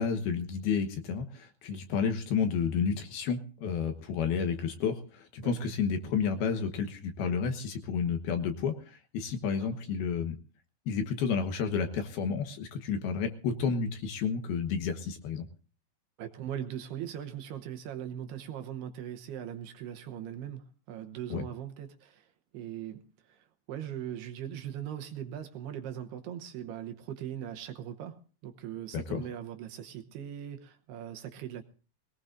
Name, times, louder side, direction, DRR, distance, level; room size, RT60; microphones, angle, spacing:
voice 1, 0.0-10.4 10.9-15.5 21.3-21.4 28.9-29.2, left 6 dB, 65° left, 6 dB, 2.8 m, -31 dB
voice 2, 16.2-31.6, right 10 dB, 70° right, 5 dB, 2.7 m, -40 dB
22.0 x 19.0 x 2.6 m, 0.38 s
omnidirectional pair, 5.3 m